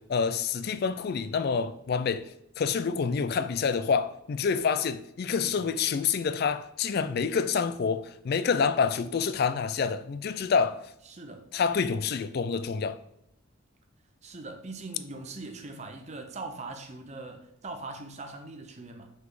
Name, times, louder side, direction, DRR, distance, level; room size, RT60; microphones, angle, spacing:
voice 1, 0.0-2.2 2.6-10.8 11.5-13.0, left 6 dB, 45° left, 0.3 m, -27 dB
voice 2, 11.1-11.5 14.2-19.1, right 3 dB, 30° right, 0.6 m, -41 dB
5.3 x 4.0 x 4.8 m
head